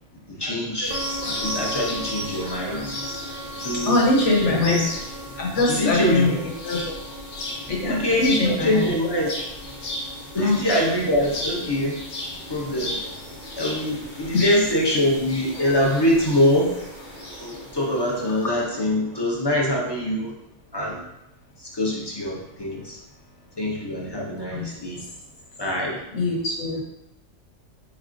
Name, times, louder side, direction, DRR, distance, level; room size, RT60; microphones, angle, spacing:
voice 1, 0.3-3.0 3.6-4.0 4.4-4.9 5.7-6.5 7.8-9.3 10.3-12.0 12.4-13.0 13.5-16.7 17.4-20.3 20.7-21.0 21.6-23.0 23.6-25.0 25.6-26.1, left 1 dB, 30° left, -3 dB, 0.5 m, -24 dB
sound 1, 0.8-18.2, left 1 dB, 55° left, 1.0 m, -35 dB
sound 2, 0.9-19.2, right 1 dB, 55° right, 0.4 m, -40 dB
voice 2, 3.9-4.9 5.4-6.3 6.6-6.9 7.7-8.8 10.3-10.6 14.3-14.5 24.5-24.7 26.1-26.8, left 2 dB, 80° left, -2 dB, 1.3 m, -22 dB
4.1 x 3.4 x 2.5 m, 0.88 s
omnidirectional pair, 1.2 m